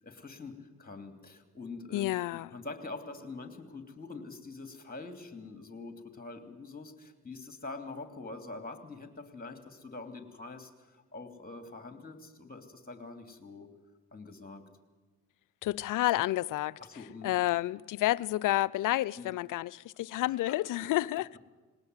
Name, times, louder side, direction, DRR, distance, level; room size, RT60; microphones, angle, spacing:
voice 1, 0.0-2.1 2.5-13.7 14.1-14.6 16.8-17.3 19.2-19.3 20.8-21.0, left 3 dB, 25° left, 3.0 m, -45 dB
voice 2, 1.9-2.5 15.6-16.8 17.2-21.4, left 16 dB, 60° left, 0.6 m, -30 dB
19.0 x 18.5 x 8.1 m
hypercardioid pair, 45°, 35 cm